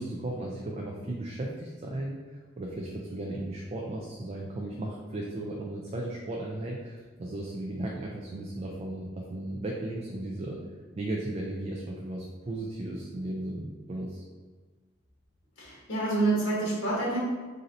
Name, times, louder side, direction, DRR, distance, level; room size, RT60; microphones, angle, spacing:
voice 1, 0.0-10.6 11.0-14.2, right 1 dB, 35° right, -1 dB, 0.3 m, -35 dB
voice 2, 15.6-17.2, right 2 dB, 75° left, -7 dB, 1.2 m, -27 dB
4.1 x 2.6 x 2.6 m, 1.4 s
head